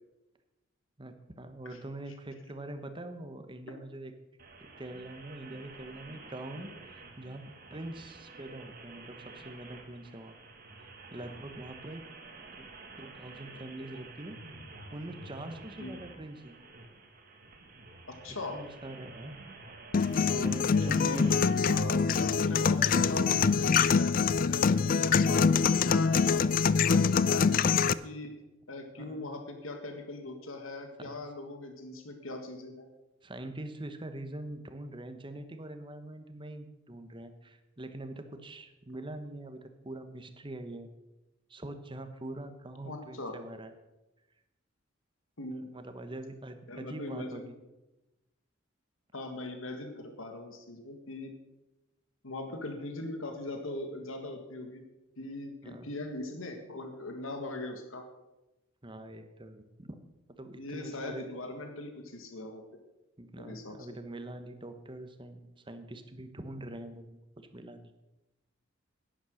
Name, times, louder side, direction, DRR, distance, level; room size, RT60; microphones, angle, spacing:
voice 1, 1.0-4.1 4.6-7.4 7.7-10.3 10.8-12.0 12.6-12.7 13.0-14.4 14.9-16.5 18.3-19.4 19.9-21.4 22.4-22.6 28.9-29.3 31.0-31.2 33.2-40.9 41.5-43.7 45.7-47.5 55.6-55.9 58.8-60.0 60.4-61.2 63.2-67.9, right 1 dB, 25° right, 8 dB, 1.1 m, -44 dB
sound 1, 4.4-21.5, right 3 dB, 45° right, 1.8 m, -50 dB
voice 2, 18.1-18.6 20.6-24.1 24.5-28.3 28.7-32.9 42.8-43.3 45.4-45.7 46.7-47.5 49.1-51.3 52.2-54.8 55.2-58.0 60.6-62.6 63.4-63.8, left 2 dB, 80° left, 5 dB, 1.7 m, -40 dB
sound 2, 19.9-27.9, left 5 dB, 40° left, 0.4 m, -25 dB
11.0 x 10.5 x 6.4 m, 1.0 s
head